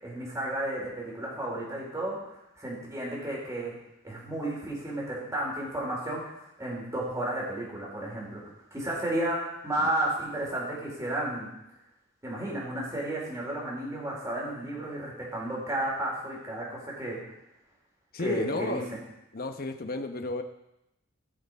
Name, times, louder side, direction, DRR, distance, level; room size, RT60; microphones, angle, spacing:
voice 1, 0.0-3.7 4.0-8.4 8.7-11.5 12.2-17.2 18.2-18.8, right 1 dB, 15° right, -4 dB, 4.4 m, -33 dB
voice 2, 18.1-18.9 19.3-20.4, left 2 dB, 50° left, 6 dB, 1.0 m, -32 dB
17.0 x 6.5 x 5.5 m, 0.86 s
head